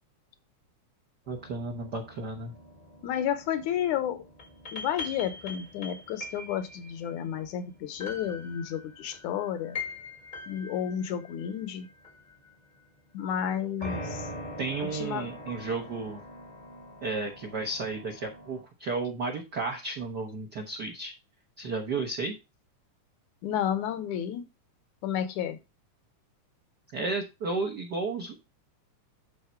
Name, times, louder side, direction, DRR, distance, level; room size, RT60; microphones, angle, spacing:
sound 1, 1.3-12.9 13.8-18.6, left 2 dB, 35° left, 0.7 m, -43 dB
voice 1, 1.3-2.5 14.6-16.2 17.0-21.1 21.6-22.3 26.9-28.3, right 3 dB, 75° right, 0.9 m, -33 dB
voice 2, 3.0-4.2 4.7-9.8 10.5-11.9 13.1-14.3 14.8-15.3 23.4-24.5 25.0-25.6, left 9 dB, 75° left, 2.2 m, -31 dB
10.5 x 4.2 x 4.4 m
omnidirectional pair, 3.6 m